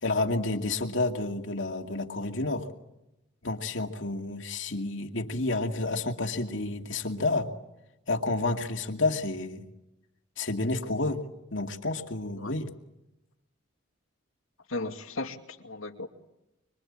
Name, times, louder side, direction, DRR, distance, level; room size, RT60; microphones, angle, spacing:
voice 1, 0.0-2.7 3.4-7.5 8.1-9.6 10.4-11.2 11.5-12.7, left 2 dB, 65° left, 4 dB, 2.4 m, -30 dB
voice 2, 14.7-16.1, left 2 dB, 85° left, 5 dB, 2.4 m, -36 dB
25.0 x 25.0 x 8.8 m, 0.91 s
head